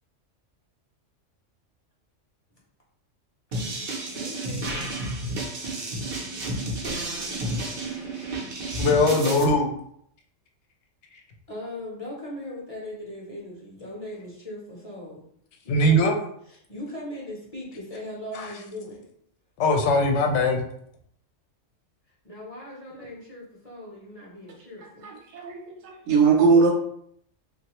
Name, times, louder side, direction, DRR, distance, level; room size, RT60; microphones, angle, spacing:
sound 1, 3.5-9.4, right 1 dB, 50° right, 0.7 m, -31 dB
voice 1, 4.1-5.1 11.5-15.3 15.6-19.1 22.2-25.1, left 1 dB, 35° left, -5 dB, 0.7 m, -39 dB
voice 2, 8.8-9.7 15.7-16.1 18.3-18.5 19.6-20.6, left 1 dB, 70° left, 3 dB, 0.9 m, -21 dB
voice 3, 25.0-26.7, right 5 dB, 65° right, 1 dB, 1.0 m, -20 dB
3.1 x 2.4 x 2.9 m, 0.68 s
omnidirectional pair, 1.3 m